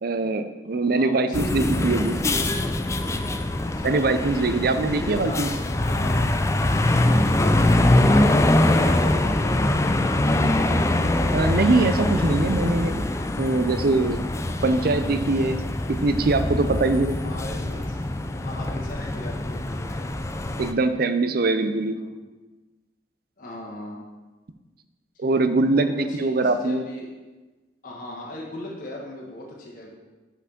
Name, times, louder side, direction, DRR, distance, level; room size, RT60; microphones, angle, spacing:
voice 1, 0.0-2.2 3.8-5.5 11.3-13.0 13.4-14.2 14.6-15.6 15.9-17.2 20.6-22.0 25.2-26.8, right 3 dB, 55° right, 10 dB, 0.5 m, -22 dB
voice 2, 0.7-2.6 3.6-4.0 4.8-6.3 7.0-10.5 17.2-18.0 18.4-20.1 21.9-22.1 23.4-24.1 25.1-25.3 25.7-27.1 27.8-29.9, left 1 dB, 45° left, -3 dB, 1.5 m, -37 dB
sound 1, 1.3-20.7, left 1 dB, 15° left, 0.4 m, -23 dB
5.9 x 5.8 x 5.9 m, 1.2 s
head